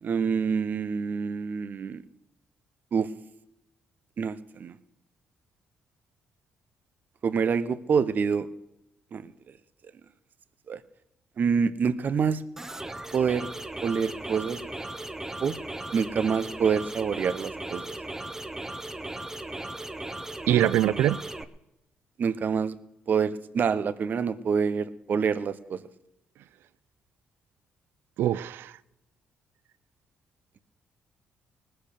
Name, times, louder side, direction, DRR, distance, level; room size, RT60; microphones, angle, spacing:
voice 1, 0.0-2.0 2.9-3.1 4.2-4.7 7.2-8.5 9.1-9.3 10.7-10.8 11.4-12.4 13.1-13.5 13.8-14.6 15.4-15.6 15.9-17.9 22.2-22.7 23.1-25.8, right 6 dB, 55° right, 1.0 m, -26 dB
sound 1, 12.6-21.4, right 2 dB, 10° right, 1.1 m, -37 dB
voice 2, 20.5-21.2 28.2-28.7, right 12 dB, 75° right, 0.5 m, -23 dB
19.0 x 8.0 x 6.7 m
supercardioid pair, 65°, 4 cm